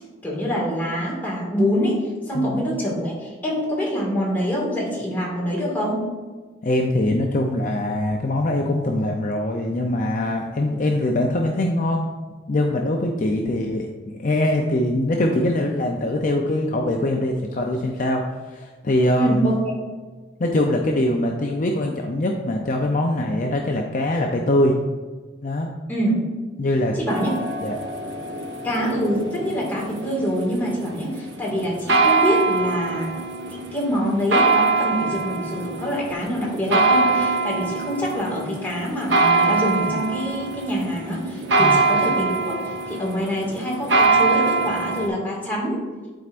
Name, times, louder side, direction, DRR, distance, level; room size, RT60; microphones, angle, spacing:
voice 1, 0.2-6.0 19.2-19.6 25.9-26.1 26.9-27.3 28.6-33.1 33.7-45.8, equal, 10° left, -5 dB, 2.0 m, -25 dB
voice 2, 6.6-12.1 12.5-19.5 20.4-24.7 25.4-25.7 26.6-27.0 27.6-27.8 41.6-41.9, left 1 dB, 45° left, 1 dB, 0.5 m, -23 dB
sound 1, 27.1-45.1, right 3 dB, 70° right, 0.7 m, -23 dB
11.5 x 4.4 x 2.5 m, 1.4 s
head